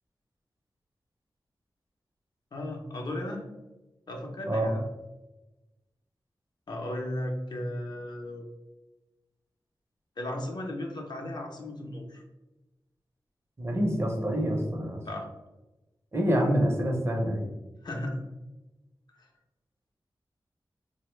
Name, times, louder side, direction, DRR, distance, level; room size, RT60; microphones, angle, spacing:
voice 1, 2.5-3.4 4.1-4.8 6.7-8.5 10.2-12.2 15.0-15.2 17.8-18.2, left 1 dB, 60° left, 1 dB, 0.6 m, -35 dB
voice 2, 13.6-15.0 16.1-17.5, equal, 30° right, 2 dB, 0.6 m, -26 dB
3.8 x 2.0 x 3.0 m, 1.1 s
wide cardioid pair, 100°, 8 cm